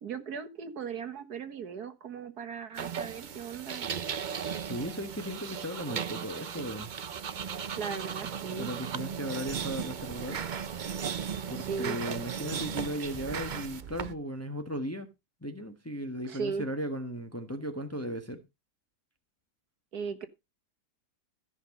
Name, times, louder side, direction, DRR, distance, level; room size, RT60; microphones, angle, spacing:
voice 1, 0.0-3.9 7.8-8.7 11.6-12.0 16.3-16.7 19.9-20.3, right 6 dB, 65° right, 1.8 m, -37 dB
sound 1, 2.8-14.1, right 7 dB, 80° right, 0.4 m, -36 dB
voice 2, 4.6-6.9 8.5-10.4 11.5-15.1 15.4-18.4, equal, 10° left, 1.2 m, -36 dB
14.5 x 5.7 x 5.2 m
omnidirectional pair, 1.8 m